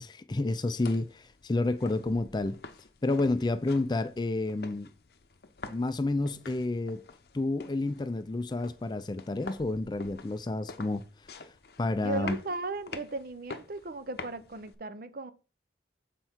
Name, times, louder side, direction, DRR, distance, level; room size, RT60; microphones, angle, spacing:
voice 1, 0.0-2.6 3.0-4.9 5.7-7.0 7.3-11.0 11.8-12.4, left 2 dB, 25° left, 0.4 m, -30 dB
sound 1, 0.5-14.7, left 4 dB, 60° left, 0.7 m, -47 dB
voice 2, 11.9-15.3, right 3 dB, 50° right, 0.6 m, -36 dB
7.6 x 4.5 x 4.4 m
head